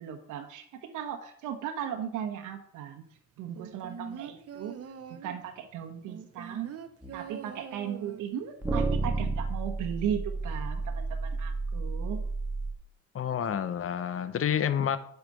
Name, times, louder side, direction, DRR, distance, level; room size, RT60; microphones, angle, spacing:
voice 1, 0.0-3.0 3.4-4.8 5.1-6.8 7.1-12.3, right 9 dB, 90° right, 4 dB, 1.1 m, -37 dB
sound 1, 3.6-5.5 6.1-8.5 8.8-8.9, right 7 dB, 50° right, 1.0 m, -43 dB
sound 2, 7.0-7.1 8.6-12.7, right 3 dB, 10° right, 1.5 m, -31 dB
voice 2, 13.1-15.0, left 8 dB, 45° left, 13 dB, 0.9 m, -29 dB
8.9 x 5.9 x 5.3 m, 0.65 s
cardioid pair, 90°, 30 cm